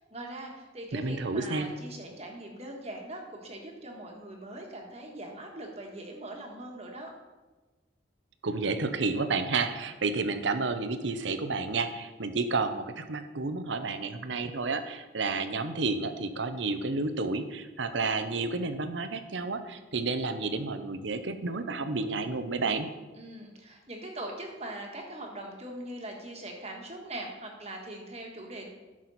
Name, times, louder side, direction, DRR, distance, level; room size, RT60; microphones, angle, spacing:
voice 1, 0.1-7.1 23.2-28.7, right 1 dB, 30° right, 1 dB, 1.5 m, -41 dB
voice 2, 0.9-1.7 8.4-22.9, right 3 dB, 70° right, 9 dB, 0.7 m, -31 dB
11.5 x 6.3 x 4.2 m, 1.2 s
head